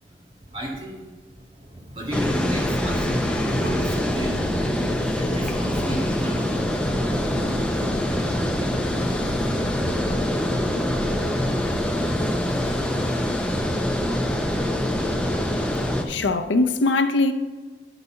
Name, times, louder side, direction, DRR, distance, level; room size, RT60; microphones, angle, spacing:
voice 1, 0.5-1.0 1.3-4.5 5.1-7.4 8.8-9.5 10.4-12.5, equal, 30° right, 1.9 m, -35 dB
Water, 2.1-16.0, left 1 dB, 5° left, 0.6 m, -24 dB
sound 1, 2.8-11.3, equal, 30° left, 1.7 m, -34 dB
voice 2, 16.1-17.3, left 2 dB, 90° left, 0.6 m, -21 dB
9.6 x 4.0 x 5.5 m
head